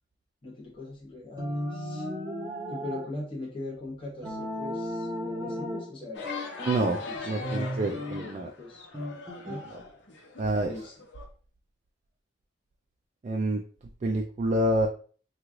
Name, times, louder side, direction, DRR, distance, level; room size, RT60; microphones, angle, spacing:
voice 1, 0.4-2.1 2.7-6.2 7.0-8.9 9.5-9.7 10.6-10.9, left 2 dB, 30° left, -4 dB, 0.9 m, -40 dB
sound 1, 1.4-3.1 4.2-5.9 6.2-8.3 8.9-9.6, equal, 20° right, 0.8 m, -35 dB
sound 2, 6.1-11.3, left 4 dB, 75° left, 0.8 m, -41 dB
voice 2, 6.7-7.0 7.3-8.5 10.4-10.7 13.2-13.6 14.0-14.9, right 1 dB, 40° right, 2 dB, 0.3 m, -27 dB
3.1 x 2.3 x 3.6 m, 0.41 s
head